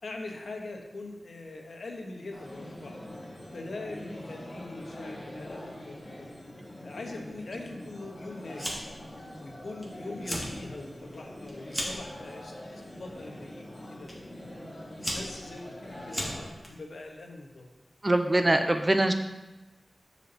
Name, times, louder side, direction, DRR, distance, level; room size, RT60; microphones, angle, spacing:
voice 1, 0.0-3.0 3.5-6.3 6.8-8.8 9.4-12.6 12.9-14.1 15.0-17.6, left 2 dB, 85° left, 1 dB, 1.4 m, -42 dB
sound 1, 2.3-16.5, left 1 dB, 30° left, 2.6 m, -44 dB
Fire, 8.6-9.1 9.4-9.9 10.1-10.5 10.9-12.1 12.9-13.2 14.1-14.2 14.7-16.7, equal, ahead, 2.1 m, -35 dB
voice 2, 18.0-19.1, right 1 dB, 30° right, 7 dB, 0.8 m, -23 dB
6.8 x 5.1 x 6.8 m, 1.0 s
wide cardioid pair, 70°, 0 cm